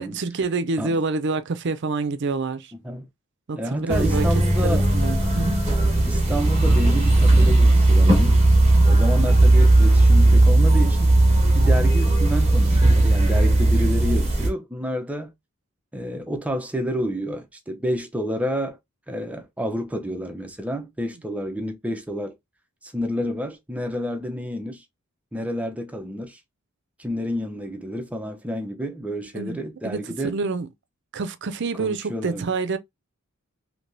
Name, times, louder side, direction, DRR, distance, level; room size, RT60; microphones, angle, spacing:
voice 1, 0.0-2.7 3.5-4.3 4.6-5.6 29.3-29.6 29.8-30.7 31.1-32.8, right 4 dB, 55° right, 0.5 m, -27 dB
voice 2, 3.6-4.9 6.1-8.4 8.8-11.1 11.5-15.3 15.9-18.8 19.1-22.3 22.8-24.8 25.3-26.4 27.0-30.4 31.8-32.5, equal, 5° right, 0.6 m, -29 dB
sound 1, 3.9-14.5, right 2 dB, 30° right, 1.4 m, -17 dB
3.4 x 2.8 x 2.6 m
head